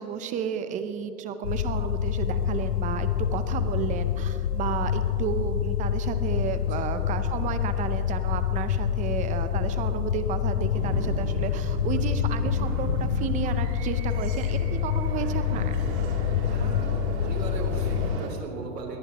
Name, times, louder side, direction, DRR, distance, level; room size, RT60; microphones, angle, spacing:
voice 1, 0.0-15.8, right 7 dB, 15° right, 9 dB, 0.6 m, -32 dB
sound 1, 1.4-18.2, left 9 dB, 90° left, 0.7 m, -27 dB
sound 2, 10.7-18.3, right 3 dB, 45° right, 3.0 m, -35 dB
voice 2, 16.5-19.0, right 3 dB, 85° right, 1 dB, 3.7 m, -38 dB
22.5 x 18.5 x 3.0 m, 2.7 s
hypercardioid pair, 130°, 47 cm